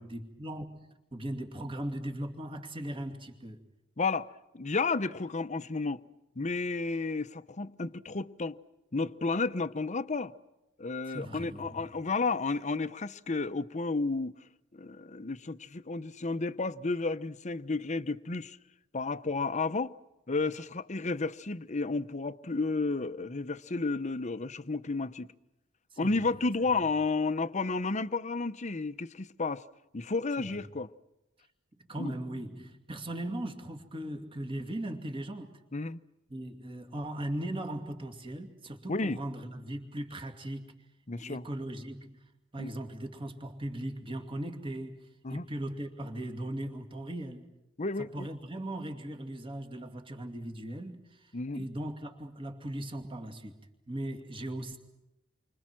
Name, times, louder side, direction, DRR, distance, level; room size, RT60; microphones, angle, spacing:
voice 1, 0.0-3.6 11.1-11.9 25.9-26.3 30.4-30.7 31.9-35.5 36.3-40.7 41.2-42.2 42.5-47.5 48.0-53.6 53.9-54.8, right 1 dB, 25° right, 2.6 m, -38 dB
voice 2, 4.0-6.0 6.4-8.6 8.9-10.3 10.8-14.4 14.7-18.6 18.9-19.9 20.3-25.3 26.0-29.6 29.9-30.9 32.0-32.1 35.7-36.0 38.9-39.2 41.1-41.4 42.6-42.7 45.2-45.4 47.8-48.3 51.3-51.6, left 3 dB, 35° left, 0.8 m, -32 dB
29.5 x 25.0 x 6.2 m
head